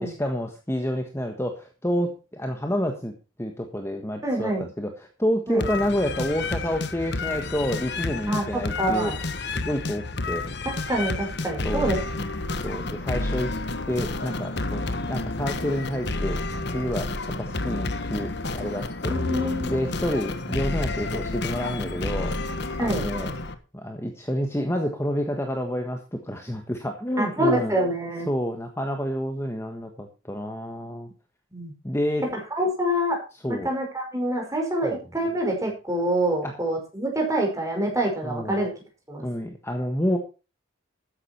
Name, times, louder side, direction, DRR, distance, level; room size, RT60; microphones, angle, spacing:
voice 1, 0.0-3.1 3.4-9.3 9.6-10.5 11.6-11.9 12.6-13.5 13.9-16.4 16.7-17.1 17.4-19.2 19.7-23.3 23.7-27.7 28.3-31.1 31.8-32.3 33.4-33.7 34.8-35.0 36.4-36.5 38.2-38.6 39.2-40.2, equal, 10° left, 4 dB, 1.4 m, -29 dB
voice 2, 4.2-4.6 5.5-5.6 8.3-9.2 10.6-12.0 19.1-19.7 22.8-23.0 27.2-28.3 31.5-31.7 32.5-33.2 33.5-38.7 39.1-39.3, right 1 dB, 15° right, 2 dB, 5.2 m, -26 dB
sound 1, 5.6-23.5, left 2 dB, 50° left, 1.3 m, -30 dB
13.5 x 10.0 x 4.4 m, 0.32 s
head